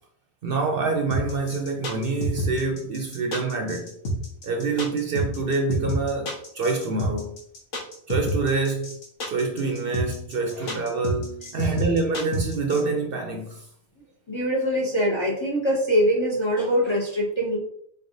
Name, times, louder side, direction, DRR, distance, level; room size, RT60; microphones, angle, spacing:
voice 1, 0.4-4.0 4.4-7.4 8.1-9.0 9.3-13.7, right 3 dB, 60° right, 0.7 m, -26 dB
sound 1, 1.1-12.8, equal, 90° left, 1.3 m, -28 dB
voice 2, 14.3-17.6, equal, 30° left, 0.7 m, -23 dB
4.1 x 3.3 x 2.6 m
omnidirectional pair, 1.3 m